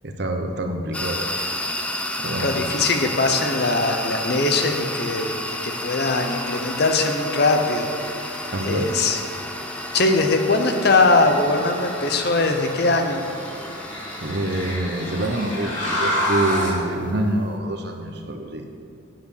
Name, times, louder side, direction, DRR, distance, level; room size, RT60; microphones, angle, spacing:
voice 1, 0.0-1.3 2.2-2.5 8.5-8.9 14.2-18.6, right 1 dB, 55° right, 4 dB, 1.0 m, -26 dB
sound 1, 0.9-17.5, left 1 dB, 5° left, 0.5 m, -32 dB
voice 2, 2.4-5.3 5.6-7.9 8.6-9.2 9.9-13.2, left 3 dB, 55° left, 5 dB, 0.9 m, -21 dB
sound 2, 4.5-16.8, equal, 70° left, 2.7 m, -32 dB
9.4 x 7.7 x 6.8 m, 2.6 s
head